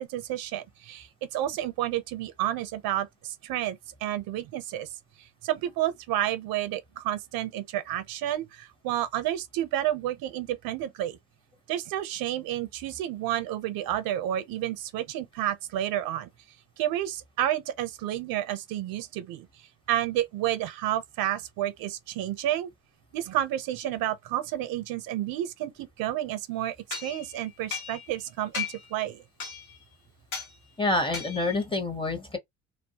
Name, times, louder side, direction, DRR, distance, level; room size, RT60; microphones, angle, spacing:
voice 1, 0.0-4.9 5.2-11.2 11.7-16.3 16.8-19.5 19.9-22.7 23.1-26.8 27.0-29.2, right 12 dB, 75° right, 0.6 m, -30 dB
sound 1, 26.9-28.2 28.5-29.0 29.4-29.8 30.3-30.5 31.1-31.6, left 6 dB, 85° left, 0.9 m, -36 dB
voice 2, 30.8-32.4, left 2 dB, 15° left, 0.7 m, -27 dB
2.2 x 2.0 x 2.7 m
cardioid pair, 90°, 36 cm